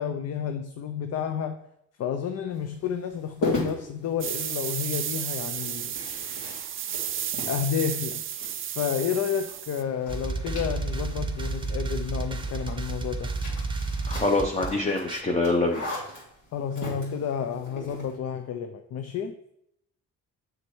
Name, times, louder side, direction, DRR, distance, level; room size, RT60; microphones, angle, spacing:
voice 1, 0.0-1.6 2.0-5.9 7.5-8.2 8.8-13.3 16.5-19.3, left 8 dB, 55° left, 7 dB, 0.6 m, -30 dB
sound 1, 2.5-18.2, left 1 dB, 75° left, 2.9 m, -39 dB
sound 2, 4.2-9.8, right 10 dB, 45° right, 0.5 m, -33 dB
sound 3, 10.1-15.2, right 3 dB, 15° right, 0.8 m, -31 dB
voice 2, 14.1-15.8, left 2 dB, 20° left, 2 dB, 0.8 m, -25 dB
7.4 x 6.4 x 3.1 m, 0.76 s
cardioid pair, 90°, 30 cm